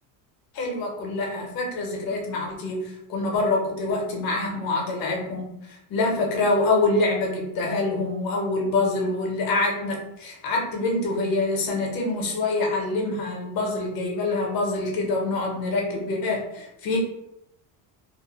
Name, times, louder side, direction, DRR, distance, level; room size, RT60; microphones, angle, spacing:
voice 1, 0.5-5.5 5.9-17.0, left 2 dB, 50° left, 0 dB, 0.9 m, -25 dB
2.6 x 2.1 x 3.0 m, 0.84 s
cardioid pair, 120°, 47 cm